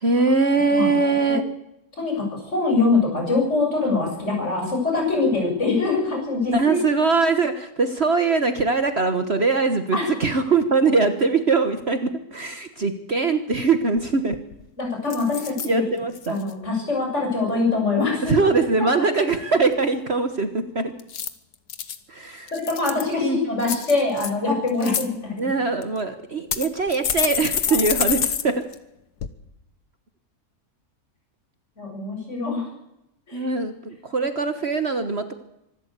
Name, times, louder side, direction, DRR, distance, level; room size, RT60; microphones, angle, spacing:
voice 1, 0.0-1.4 6.5-14.4 15.6-16.4 18.3-20.9 22.1-22.5 23.2-23.4 25.4-28.6 33.3-35.3, right 4 dB, 45° right, 8 dB, 1.4 m, -22 dB
voice 2, 1.9-6.8 9.9-10.1 14.8-15.8 16.3-18.3 22.5-25.3 31.8-32.7 33.3-33.5, left 3 dB, 45° left, 0 dB, 7.4 m, -23 dB
sound 1, 14.0-14.1 14.3-14.7 15.1-15.7 16.1-16.5 21.0-22.0 22.5-23.1 23.6-24.3 24.7-25.0 25.8-25.9 26.5-28.4 28.7-28.8 29.2-29.3, left 8 dB, 80° left, 1.7 m, -27 dB
25.0 x 13.0 x 8.2 m, 0.86 s
omnidirectional pair, 1.7 m